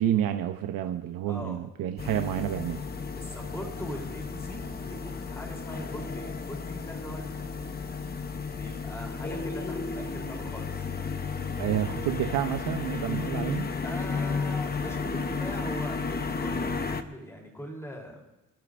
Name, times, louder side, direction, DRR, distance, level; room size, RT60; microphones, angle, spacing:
voice 1, 0.0-2.8 11.6-13.7, right 11 dB, 90° right, 6 dB, 0.8 m, -29 dB
voice 2, 1.3-1.7 3.1-7.7 8.5-10.9 13.8-18.2, equal, 10° left, -1 dB, 3.5 m, -41 dB
sound 1, 2.0-17.0, left 4 dB, 30° left, 0.9 m, -33 dB
26.0 x 12.0 x 2.6 m, 1.0 s
cardioid pair, 130°, 34 cm